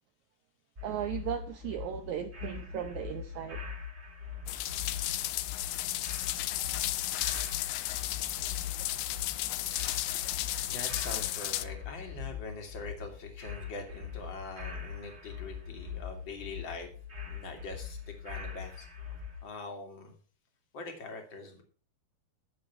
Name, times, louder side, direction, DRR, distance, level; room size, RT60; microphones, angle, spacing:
sound 1, 0.8-19.4, left 7 dB, 35° right, 1.1 m, -42 dB
voice 1, 0.8-3.6, right 10 dB, 80° right, 1.7 m, -36 dB
sound 2, 4.5-11.7, left 15 dB, 85° left, 2.6 m, -34 dB
voice 2, 9.0-9.6 10.4-16.9 17.3-18.9 19.4-20.2 20.7-21.6, left 3 dB, 35° left, 2.6 m, -43 dB
13.0 x 7.0 x 5.9 m
omnidirectional pair, 4.5 m